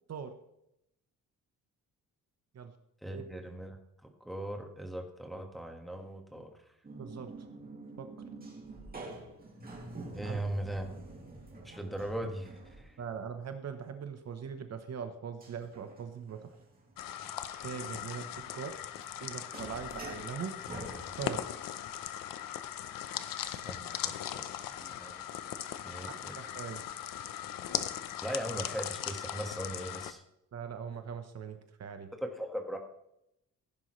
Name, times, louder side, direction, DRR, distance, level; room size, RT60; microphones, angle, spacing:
voice 1, 3.0-6.5 10.1-10.9 11.6-12.5 12.8-13.0 23.4-25.2 25.8-26.3 28.2-30.2 32.1-32.8, right 1 dB, ahead, 3 dB, 1.6 m, -39 dB
sound 1, 6.8-13.2 15.4-21.5, right 2 dB, 25° right, 2.6 m, -48 dB
voice 2, 7.0-7.3 8.0-8.1 10.2-10.4 13.0-16.5 17.6-18.7 19.2-20.5 21.2-21.4 26.1-26.8 30.5-32.1, right 7 dB, 50° right, 7 dB, 1.0 m, -41 dB
sound 2, 17.0-30.1, left 11 dB, 75° left, 0.8 m, -39 dB
15.5 x 10.5 x 3.2 m, 0.80 s
cardioid pair, 145°, 34 cm